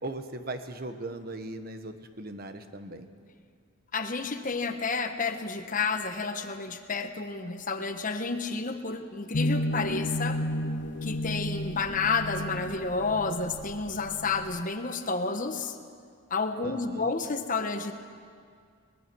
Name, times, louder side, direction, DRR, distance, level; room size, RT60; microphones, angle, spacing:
voice 1, 0.0-3.1 16.6-17.1, right 2 dB, 45° right, 8 dB, 1.3 m, -38 dB
voice 2, 3.9-10.4 11.0-15.8 16.3-17.9, left 4 dB, 40° left, 7 dB, 1.2 m, -30 dB
sound 1, 9.3-14.6, left 1 dB, 55° left, 0.7 m, -32 dB
23.0 x 20.0 x 6.2 m, 2.2 s
head